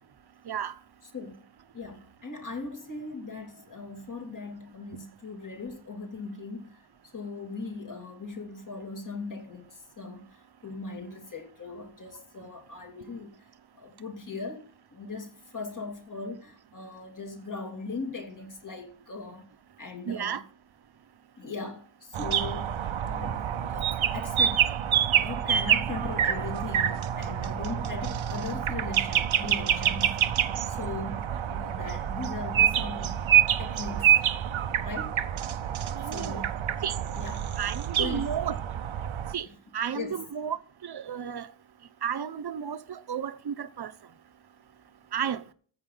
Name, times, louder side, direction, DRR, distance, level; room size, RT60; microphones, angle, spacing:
voice 1, 1.0-1.5 1.7-13.5 13.7-19.5 19.8-20.4 21.4-22.7 23.0-24.7 25.2-30.3 30.7-33.2 33.6-34.2 34.8-35.2 35.8-36.6 37.1-37.5 38.0-38.4 39.9-40.2, left 4 dB, 40° left, 2.5 m, -39 dB
voice 2, 20.1-20.4 35.9-36.4 36.8-37.0 37.6-38.6 39.3-39.5 39.7-41.5 42.0-43.9 45.1-45.4, right 8 dB, 55° right, 1.0 m, -32 dB
sound 1, 22.1-39.3, right 9 dB, 85° right, 0.9 m, -27 dB
14.0 x 7.8 x 3.9 m
wide cardioid pair, 170°, 46 cm